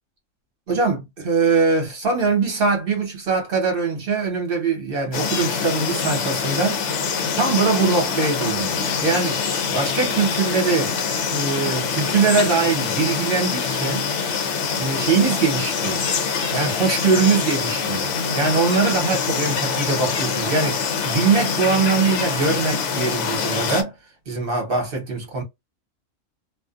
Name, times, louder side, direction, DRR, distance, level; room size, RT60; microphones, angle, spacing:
voice 1, 0.7-6.8 7.4-9.4 9.7-11.0 11.3-14.1 14.8-16.1 16.5-23.9 24.3-25.4, right 4 dB, 45° right, 1.2 m, -22 dB
sound 1, 5.1-23.8, left 6 dB, 70° left, 0.9 m, -25 dB
2.5 x 2.3 x 2.4 m
omnidirectional pair, 1.4 m